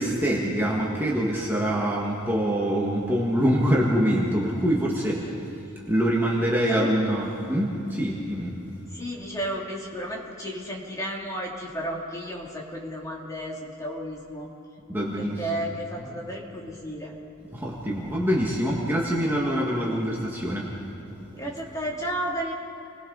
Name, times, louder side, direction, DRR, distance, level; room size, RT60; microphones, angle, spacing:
voice 1, 0.0-5.3 5.9-8.6 14.9-15.7 17.5-21.4, equal, 10° right, -5 dB, 2.0 m, -25 dB
voice 2, 5.0-5.3 6.7-6.9 8.9-14.5 15.2-17.1 21.3-22.5, right 1 dB, 15° left, -3 dB, 2.9 m, -33 dB
29.5 x 21.0 x 4.1 m, 2.9 s
head